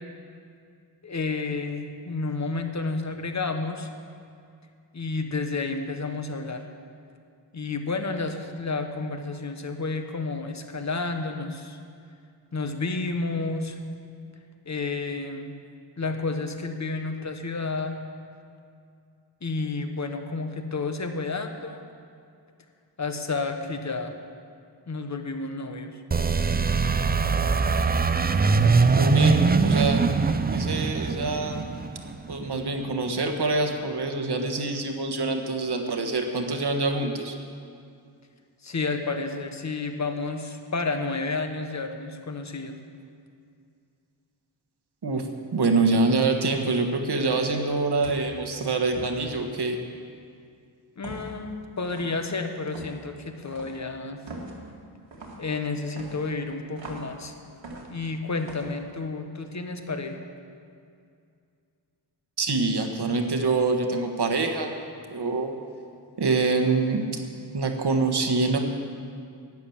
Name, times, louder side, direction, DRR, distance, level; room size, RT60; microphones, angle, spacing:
voice 1, 1.0-3.9 4.9-6.7 7.5-11.8 12.5-13.8 14.6-15.5 16.0-18.0 19.4-21.8 23.0-24.1 24.9-25.9 38.6-42.8 51.0-54.2 55.4-57.3 57.9-60.2, left 3 dB, 35° left, 6 dB, 1.2 m, -31 dB
sound 1, 26.1-32.7, right 4 dB, 20° right, 0.5 m, -22 dB
voice 2, 28.8-30.0 30.5-31.6 32.3-37.4 45.0-49.8 62.4-64.7 65.1-65.5 66.2-67.0 67.5-68.6, right 3 dB, 55° right, 4 dB, 1.5 m, -25 dB
sound 2, 47.2-47.5 48.0-48.3 48.9-49.2 51.0-51.4 51.8-52.2 52.7-53.0 53.5-53.8 54.3-54.6 55.1-55.4 56.0-57.1 57.6-58.1 58.4-58.7, right 2 dB, 75° right, 2.3 m, -41 dB
12.0 x 9.1 x 7.3 m, 2.4 s
cardioid pair, 65°, 46 cm